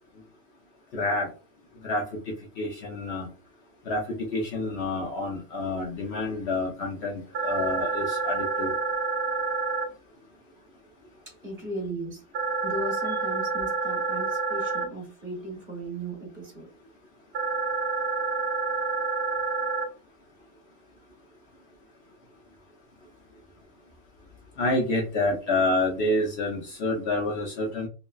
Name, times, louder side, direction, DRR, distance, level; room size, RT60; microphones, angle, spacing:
voice 1, 0.9-1.3 1.8-2.0 2.6-3.3 3.9-8.7 24.6-27.9, left 2 dB, 55° left, 0 dB, 0.8 m, -28 dB
sound 1, 7.3-9.8 12.3-14.8 17.3-19.8, right 4 dB, 70° right, 0.5 m, -28 dB
voice 2, 11.3-12.2 12.6-16.7, right 1 dB, 35° right, 0 dB, 1.1 m, -36 dB
3.2 x 2.1 x 2.3 m, 0.34 s
omnidirectional pair, 1.6 m